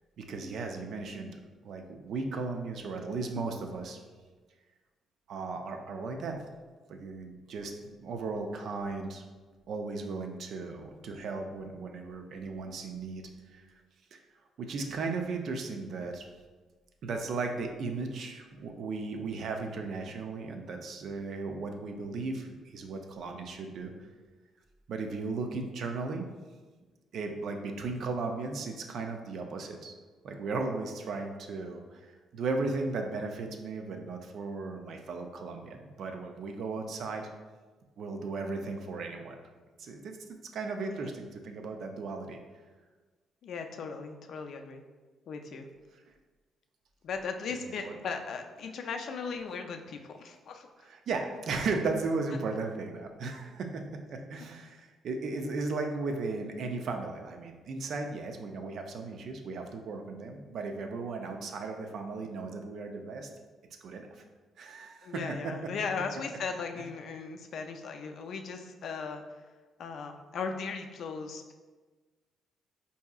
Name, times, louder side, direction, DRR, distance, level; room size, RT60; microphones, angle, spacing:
voice 1, 0.2-1.3 1.6-4.0 5.3-6.4 6.9-9.2 9.7-13.7 14.1-14.2 14.6-16.3 17.0-24.1 24.9-26.3 27.1-30.0 30.2-37.3 38.0-39.4 39.8-42.4 45.9-46.0 47.5-48.0 49.3-49.4 50.8-63.3 63.8-64.2 64.6-66.4 66.8-66.9, right 3 dB, 65° right, 4 dB, 0.4 m, -36 dB
voice 2, 43.4-44.8 45.3-45.7 47.0-50.7 65.0-69.2 69.8-71.5, left 5 dB, 65° left, 5 dB, 0.3 m, -37 dB
4.5 x 2.7 x 2.3 m, 1.3 s
cardioid pair, 90°, 0 cm